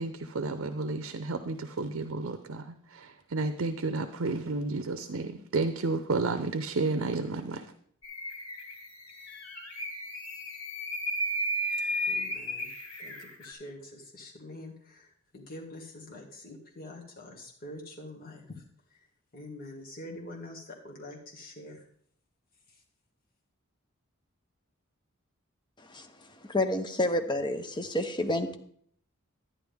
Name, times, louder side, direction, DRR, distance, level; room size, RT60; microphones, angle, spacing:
voice 1, 0.0-7.7, right 3 dB, 65° right, 10 dB, 0.6 m, -31 dB
sound 1, 8.0-13.5, equal, 90° left, 3.2 m, -34 dB
voice 2, 12.1-12.7 13.0-18.6 18.9-19.1 19.3-21.8 22.7-22.8, left 1 dB, 45° left, -2 dB, 1.9 m, -45 dB
voice 3, 26.4-28.5, left 1 dB, 20° left, 6 dB, 0.8 m, -29 dB
11.0 x 9.9 x 3.5 m, 0.62 s
head